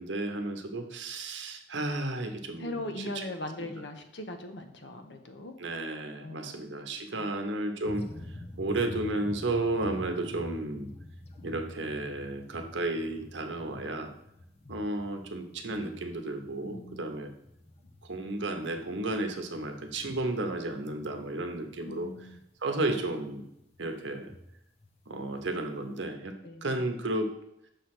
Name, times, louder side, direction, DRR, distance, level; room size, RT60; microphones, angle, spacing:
voice 1, 0.0-3.3 3.6-3.8 5.6-8.1 8.6-10.9 11.4-14.1 14.7-17.3 18.0-22.1 22.6-23.5 23.8-24.3 25.1-26.4 26.6-27.3, right 2 dB, 75° right, 5 dB, 0.8 m, -33 dB
voice 2, 2.6-5.5 6.2-6.5 7.1-7.3 16.6-17.1 21.8-22.4 26.4-26.8, left 1 dB, 70° left, 6 dB, 0.8 m, -40 dB
sound 1, 7.9-26.1, left 1 dB, 35° left, 0.7 m, -47 dB
6.6 x 3.2 x 5.9 m, 0.80 s
head